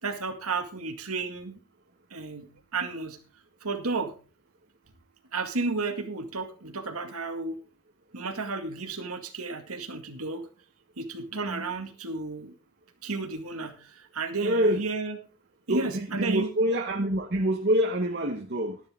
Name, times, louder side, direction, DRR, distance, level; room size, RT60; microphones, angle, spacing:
voice 1, 0.0-1.6 2.1-3.2 3.6-4.2 5.3-7.6 8.1-10.5 11.0-12.5 13.0-15.2 15.7-16.5, right 3 dB, 85° right, 2.1 m, -32 dB
voice 2, 14.4-14.8 15.7-18.8, equal, 50° right, 1.1 m, -26 dB
13.0 x 11.5 x 3.7 m
head